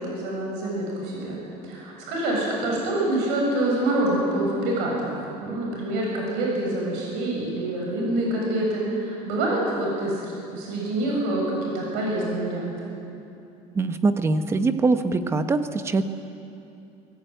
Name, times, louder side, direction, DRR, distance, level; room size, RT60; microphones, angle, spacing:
voice 1, 0.0-1.4 1.7-5.1 5.4-12.9, right 1 dB, 75° right, -2 dB, 7.2 m, -26 dB
voice 2, 13.7-16.0, right 3 dB, 15° right, 9 dB, 1.0 m, -23 dB
23.0 x 18.0 x 9.3 m, 2.7 s
cardioid pair, 165°, 15 cm